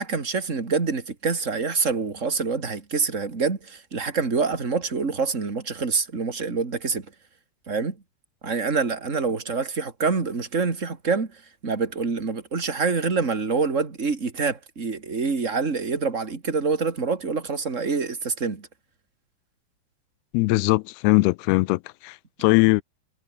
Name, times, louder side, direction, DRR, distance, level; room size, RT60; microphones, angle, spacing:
voice 1, 0.0-7.1 7.7-8.0 8.4-18.7, right 4 dB, 25° right, 2.2 m, -26 dB
voice 2, 20.3-22.8, left 23 dB, 85° left, 2.5 m, -20 dB
omnidirectional pair, 4.7 m